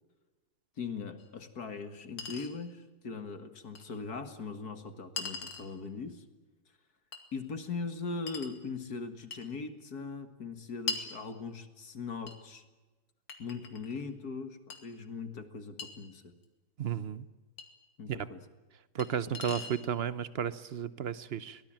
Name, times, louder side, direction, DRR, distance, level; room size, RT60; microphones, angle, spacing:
voice 1, 0.8-6.2 7.3-12.6 13.4-16.2 18.0-18.4, left 4 dB, 50° left, 9 dB, 2.3 m, -40 dB
Chink clink, 1.2-1.3 2.2-2.5 3.8-3.9 5.2-5.7 7.1-7.3 8.3-8.6 9.3-9.5 10.9-11.1 12.3-12.4 13.3-14.0 14.7-14.8 15.8-15.9 17.6-17.7 19.0-19.1 19.3-19.8, left 4 dB, 85° left, 3.3 m, -39 dB
voice 2, 16.8-17.3 18.1-18.3 18.9-21.6, right 8 dB, 65° right, 15 dB, 0.6 m, -33 dB
24.0 x 18.5 x 8.9 m, 1.2 s
omnidirectional pair, 2.3 m